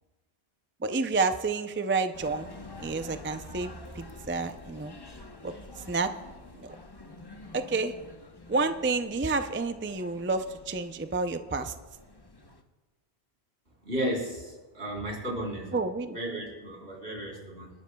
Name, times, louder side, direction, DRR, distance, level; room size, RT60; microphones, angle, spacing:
voice 1, 0.8-2.5 2.8-5.0 5.4-5.5 5.9-6.1 6.6-6.8 7.5-7.9 8.5-11.7 15.7-16.2, right 3 dB, 20° right, 8 dB, 0.3 m, -29 dB
sound 1, 2.1-12.6, left 2 dB, 25° left, 0.9 m, -48 dB
voice 2, 13.8-15.8 16.1-17.7, right 1 dB, 70° right, -3 dB, 4.2 m, -34 dB
26.5 x 12.5 x 2.3 m, 1.2 s
omnidirectional pair, 1.1 m